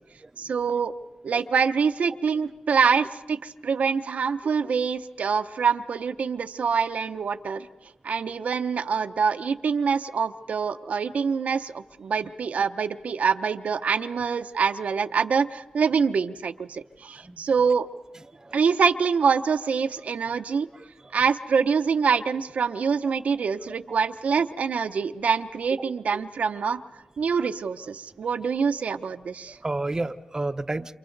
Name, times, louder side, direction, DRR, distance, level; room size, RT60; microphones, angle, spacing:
voice 1, 0.4-0.9 1.2-7.7 8.0-17.9 18.5-20.7 21.1-26.8 27.2-29.6, right 6 dB, 80° right, 7 dB, 0.8 m, -25 dB
voice 2, 23.7-24.0 29.6-30.9, right 2 dB, 25° right, 9 dB, 0.8 m, -31 dB
29.0 x 28.0 x 4.0 m, 1.0 s
cardioid pair, 70°, 2 cm